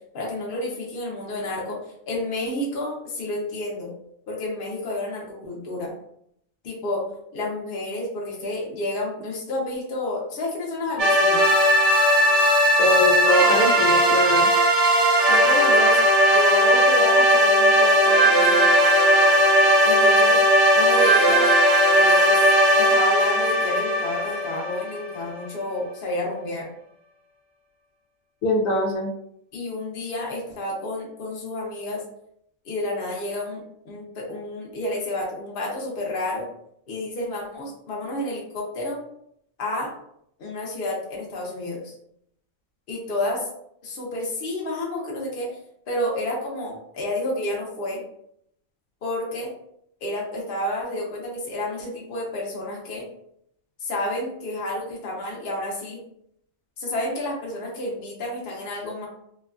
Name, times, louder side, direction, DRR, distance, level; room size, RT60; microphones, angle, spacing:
voice 1, 0.1-1.8 2.1-3.9 4.3-5.9 6.6-7.0 7.3-11.4 15.2-16.0 16.3-18.8 19.8-20.4 20.7-21.5 21.9-22.5 22.8-26.7 29.5-32.0 32.6-36.5 36.9-39.0 39.6-39.9 40.4-41.9 42.9-43.5 43.8-45.5 45.9-48.0 49.0-49.5 50.0-53.1 53.8-56.0 56.8-59.1, left 1 dB, 45° left, -3 dB, 0.9 m, -30 dB
sound 1, 11.0-25.2, equal, 40° right, 0.9 m, -17 dB
voice 2, 12.8-14.5 28.4-29.1, left 1 dB, 80° left, 0 dB, 1.0 m, -22 dB
3.0 x 2.3 x 2.4 m, 0.72 s
omnidirectional pair, 1.4 m